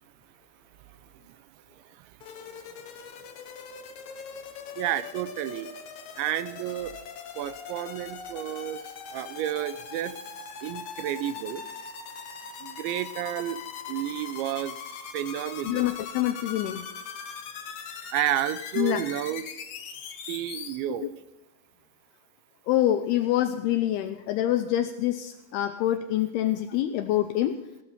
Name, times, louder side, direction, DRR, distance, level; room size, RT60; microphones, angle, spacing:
voice 1, 1.7-2.2 4.8-5.7 6.2-6.9 7.4-10.1 10.6-11.6 12.6-13.6 13.9-14.8 15.1-16.0 18.1-19.4 20.3-21.1, right 12 dB, 85° right, 13 dB, 3.0 m, -31 dB
sound 1, 2.2-20.8, left 6 dB, 65° left, 1.9 m, -41 dB
voice 2, 15.7-16.9 18.8-19.0 22.7-27.6, left 12 dB, 85° left, 8 dB, 2.3 m, -26 dB
16.5 x 13.0 x 4.2 m, 1.0 s
omnidirectional pair, 5.2 m